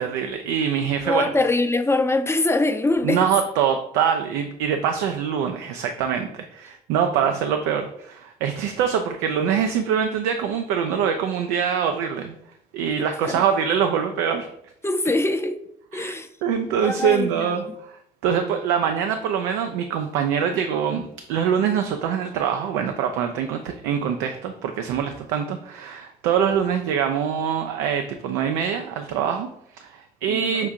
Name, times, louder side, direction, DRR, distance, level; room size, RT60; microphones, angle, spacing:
voice 1, 0.0-1.3 3.0-12.3 12.7-14.5 15.9-16.1 16.4-17.9 18.2-30.7, right 8 dB, 75° right, 0.4 m, -24 dB
voice 2, 1.0-3.3 13.0-13.4 14.8-15.6 15.9-16.3 16.8-17.8 30.3-30.7, left 2 dB, 10° left, 0.5 m, -23 dB
5.9 x 3.5 x 2.5 m
hypercardioid pair, 50°, 21 cm